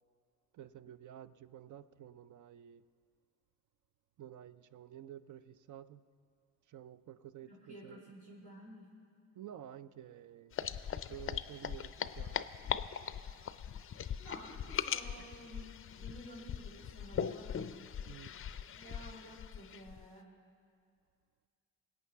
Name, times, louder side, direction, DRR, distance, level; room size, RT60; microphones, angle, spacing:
voice 1, 0.5-2.8 4.2-6.0 6.7-8.0 9.3-10.7 11.0-12.4 18.1-18.3, right 11 dB, 50° right, 14 dB, 0.5 m, -51 dB
voice 2, 7.4-8.9 14.2-17.7 18.8-20.3, equal, 80° right, -8 dB, 3.1 m, -52 dB
sound 1, 10.5-20.0, left 8 dB, 35° left, 0.5 m, -40 dB
21.0 x 8.6 x 3.5 m, 2.2 s
hypercardioid pair, 50°, 39 cm